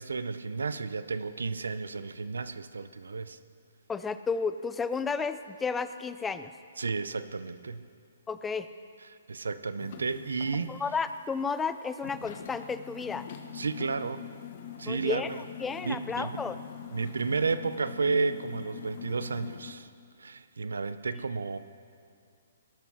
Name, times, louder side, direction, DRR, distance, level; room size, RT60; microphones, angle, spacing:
voice 1, 0.0-3.4 6.8-7.8 9.3-10.8 13.5-14.3 14.8-15.2 15.8-16.4 16.9-19.9 20.2-21.6, right 4 dB, 85° right, 13 dB, 0.6 m, -32 dB
voice 2, 3.9-6.5 8.3-8.7 10.7-13.3 14.8-15.3 15.6-16.6, left 5 dB, 10° left, 12 dB, 0.4 m, -32 dB
sound 1, 9.8-10.8 11.1-11.2 11.6-11.7 12.0-19.7, left 9 dB, 50° left, 1.3 m, -44 dB
18.5 x 12.0 x 4.3 m, 2.3 s
hypercardioid pair, 140°, 0 cm